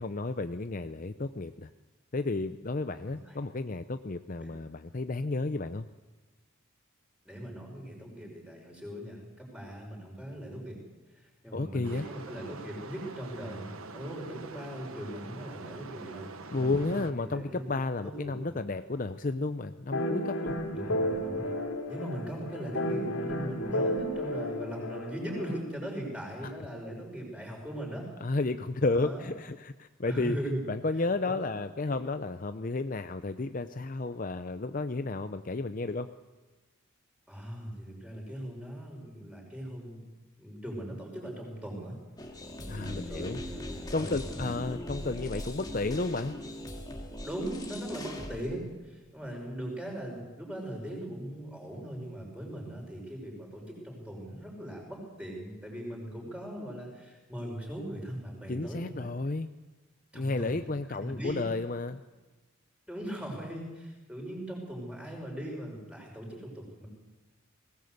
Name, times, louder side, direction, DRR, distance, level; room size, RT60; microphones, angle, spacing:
voice 1, 0.0-1.7 2.1-5.9 11.5-12.1 16.5-20.6 26.4-26.5 28.2-30.4 30.7-36.1 42.7-43.4 43.9-46.3 58.5-59.5 60.1-62.0, left 3 dB, 40° left, 10 dB, 0.6 m, -32 dB
voice 2, 3.1-3.4 4.4-4.5 7.2-10.8 11.1-17.7 18.0-18.6 20.7-21.5 21.9-28.1 28.9-29.3 30.0-30.6 31.2-31.5 31.9-32.0 37.3-40.0 40.4-42.0 42.6-44.8 47.2-59.1 60.1-60.6 61.0-61.5 62.9-66.9, equal, 5° right, -1 dB, 5.9 m, -40 dB
sound 1, 11.8-17.1, right 3 dB, 80° right, 1.4 m, -45 dB
sound 2, 19.9-25.6, equal, 85° left, 3.6 m, -32 dB
sound 3, 42.2-48.5, left 1 dB, 20° left, 2.2 m, -40 dB
20.5 x 18.0 x 8.1 m, 1.2 s
head